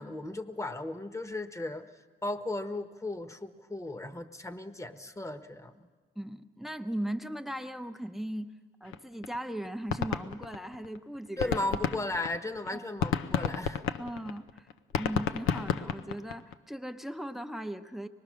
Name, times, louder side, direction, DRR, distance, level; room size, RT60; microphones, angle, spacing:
voice 1, 0.0-1.8 2.2-5.9 11.4-13.8, left 2 dB, 15° left, 9 dB, 1.2 m, -36 dB
voice 2, 6.2-8.5 8.8-11.6 12.7-12.9 14.0-18.1, right 1 dB, ahead, 9 dB, 0.8 m, -38 dB
sound 1, 8.9-9.0 9.2-9.4 9.6-11.0 11.3-16.5, left 8 dB, 85° left, 0.7 m, -31 dB
24.5 x 20.5 x 6.3 m, 1.5 s
cardioid pair, 90°, 20 cm